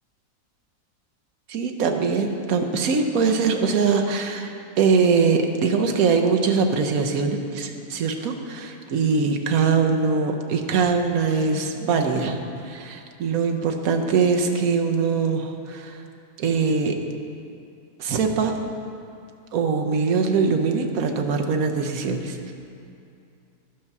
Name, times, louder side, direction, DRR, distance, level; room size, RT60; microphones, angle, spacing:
voice 1, 1.5-4.5 4.8-16.0 16.4-17.0 18.0-18.5 19.5-22.5, right 5 dB, 70° right, 4 dB, 1.1 m, -22 dB
11.0 x 5.5 x 5.9 m, 2.6 s
omnidirectional pair, 1.7 m